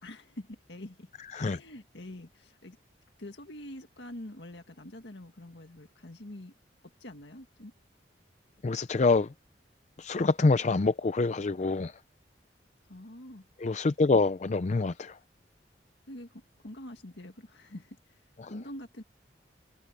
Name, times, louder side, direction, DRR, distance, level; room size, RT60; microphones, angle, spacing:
voice 1, 0.0-2.8 3.2-6.5 7.0-7.7 12.8-13.5 13.8-13.9 16.1-19.0, left 1 dB, 70° left, 1.9 m, -45 dB
voice 2, 8.6-9.3 10.0-11.9 13.6-15.1 18.4-18.5, left 3 dB, 40° left, 0.5 m, -26 dB
head